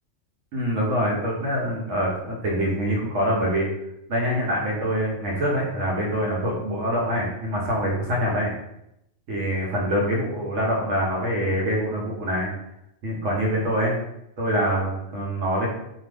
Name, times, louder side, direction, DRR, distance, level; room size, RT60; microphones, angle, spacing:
voice 1, 0.5-3.7 4.1-8.5 9.3-12.5 13.0-13.9 14.4-15.7, equal, 80° right, -3 dB, 1.1 m, -25 dB
2.6 x 2.4 x 3.3 m, 0.80 s
omnidirectional pair, 1.3 m